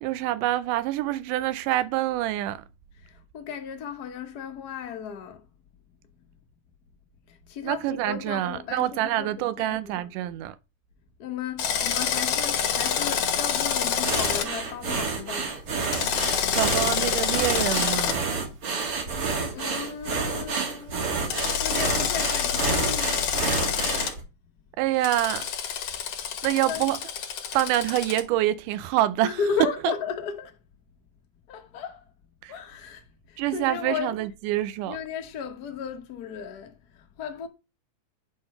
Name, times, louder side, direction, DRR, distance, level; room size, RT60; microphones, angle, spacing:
voice 1, 0.0-2.6 7.6-10.6 16.5-18.3 24.8-25.5 26.4-27.0 27.5-29.4 29.8-29.9 32.4-32.6 33.4-35.0, right 14 dB, 85° right, 2.1 m, -26 dB
voice 2, 3.0-5.4 7.3-10.1 11.2-15.6 19.0-21.2 21.6-23.3 26.6-26.9 29.2-30.6 31.5-32.0 32.5-34.2 34.8-37.5, left 7 dB, 75° left, 0.9 m, -35 dB
Drill, 11.6-14.5 15.8-18.2 21.3-24.1 25.0-28.2, left 8 dB, 60° left, 1.9 m, -27 dB
sound 1, 14.0-24.2, right 4 dB, 50° right, 2.3 m, -29 dB
9.4 x 3.8 x 5.4 m
omnidirectional pair, 3.7 m